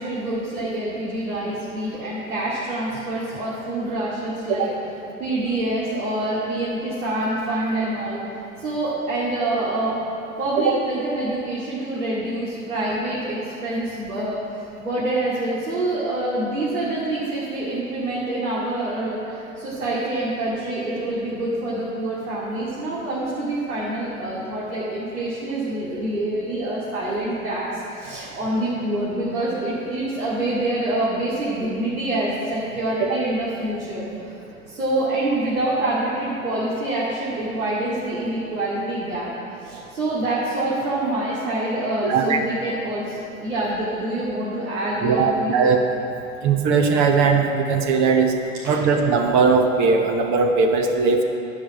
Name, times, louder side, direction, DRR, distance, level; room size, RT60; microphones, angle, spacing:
voice 1, 0.0-4.7 5.2-8.2 8.6-10.0 10.4-14.4 14.8-34.3 34.7-39.3 39.6-45.6 48.7-48.8, right 1 dB, 90° right, -9 dB, 2.4 m, -26 dB
voice 2, 42.0-42.4 45.0-45.8 46.4-48.3 48.6-51.2, right 5 dB, 40° right, 4 dB, 1.0 m, -19 dB
10.0 x 5.7 x 7.6 m, 2.8 s
hypercardioid pair, 100°, 42 cm